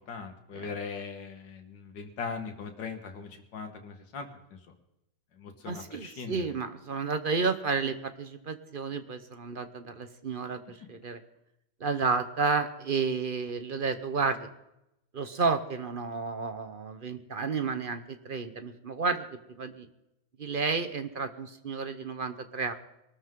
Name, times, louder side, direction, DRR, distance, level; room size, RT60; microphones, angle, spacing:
voice 1, 0.1-4.3 5.4-6.5, left 5 dB, 85° left, 4 dB, 2.1 m, -39 dB
voice 2, 5.7-11.2 11.8-14.5 15.1-19.2 19.6-19.9 20.4-22.7, right 4 dB, 40° right, 9 dB, 0.8 m, -31 dB
22.0 x 13.5 x 3.7 m, 0.87 s
omnidirectional pair, 1.9 m